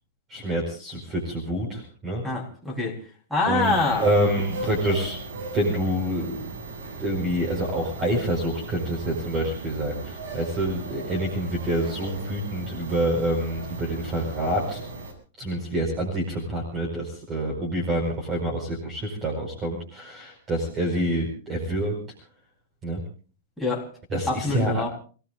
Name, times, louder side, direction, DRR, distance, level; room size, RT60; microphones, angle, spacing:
voice 1, 0.3-2.2 3.5-6.5 7.0-14.8 15.4-22.0 22.8-23.0 24.1-24.8, right 1 dB, 20° right, 0 dB, 4.8 m, -27 dB
voice 2, 2.2-3.0 3.3-4.1 23.6-23.9 24.3-24.9, left 3 dB, ahead, -4 dB, 3.8 m, -25 dB
sound 1, 3.6-15.1, right 3 dB, 75° right, 7.2 m, -37 dB
29.5 x 17.5 x 2.5 m, 0.39 s
supercardioid pair, 155°, 0 cm